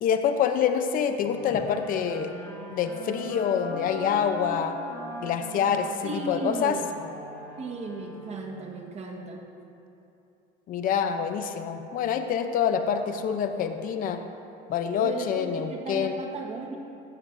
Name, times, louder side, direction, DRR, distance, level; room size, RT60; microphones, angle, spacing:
voice 1, 0.0-2.3 2.7-4.7 5.2-6.8 10.7-14.2 14.7-16.2, left 7 dB, 45° left, 7 dB, 0.7 m, -26 dB
sound 1, 1.2-8.7, right 1 dB, 15° left, 2.3 m, -41 dB
voice 2, 6.0-6.8 7.6-9.4 15.0-16.8, right 3 dB, 35° right, 1 dB, 1.6 m, -35 dB
15.5 x 12.0 x 2.7 m, 2.8 s
cardioid pair, 125°, 20 cm